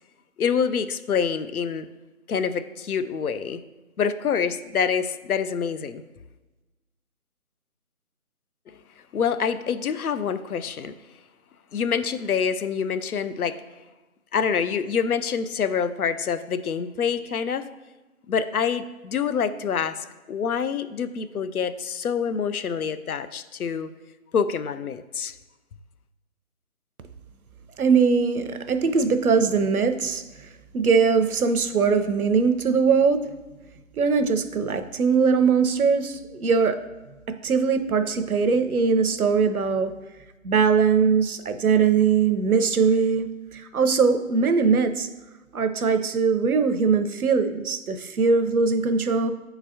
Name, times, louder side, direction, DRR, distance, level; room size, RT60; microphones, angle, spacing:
voice 1, 0.4-1.9 2.3-3.6 4.0-6.0 9.1-10.9 11.7-13.6 14.3-17.7 18.3-23.9 24.3-25.3, left 6 dB, 85° left, 12 dB, 0.6 m, -26 dB
voice 2, 27.8-30.2 30.7-33.4 34.0-36.8 37.3-39.9 40.4-45.1 45.5-49.3, right 5 dB, 85° right, 9 dB, 0.7 m, -21 dB
10.0 x 4.0 x 2.7 m, 1.1 s
figure-of-eight pair, 165°, 42 cm